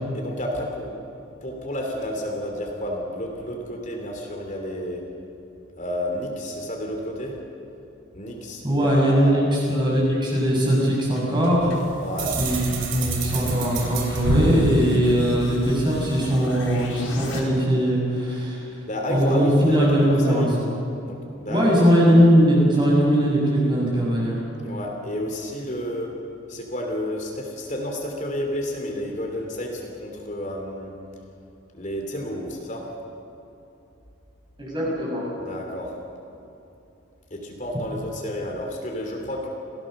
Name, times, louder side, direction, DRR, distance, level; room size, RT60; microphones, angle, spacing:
voice 1, 0.1-1.0 1.4-5.0 5.8-7.4 8.1-9.4 12.0-12.3 18.8-20.5 21.0-21.9 24.6-26.1 26.5-30.9 31.7-32.9 35.4-35.9 37.3-39.5, equal, 40° left, 0 dB, 3.1 m, -30 dB
voice 2, 8.6-11.7 12.4-18.6 19.1-20.5 21.5-24.4 34.6-35.3, equal, 25° right, -4 dB, 6.8 m, -20 dB
sound 1, 11.2-17.4, left 1 dB, 90° left, 4.5 m, -37 dB
sound 2, 12.2-16.0, right 1 dB, 85° right, 3.3 m, -26 dB
28.0 x 16.5 x 6.7 m, 2.8 s
head